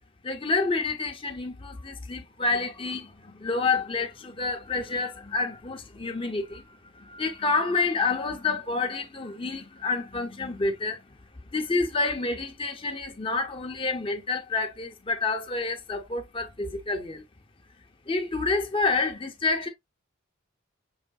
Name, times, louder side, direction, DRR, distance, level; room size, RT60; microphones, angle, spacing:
voice 1, 0.2-11.2 11.5-17.2 18.1-19.7, left 3 dB, 25° left, 0.8 m, -28 dB
5.7 x 3.2 x 2.4 m
head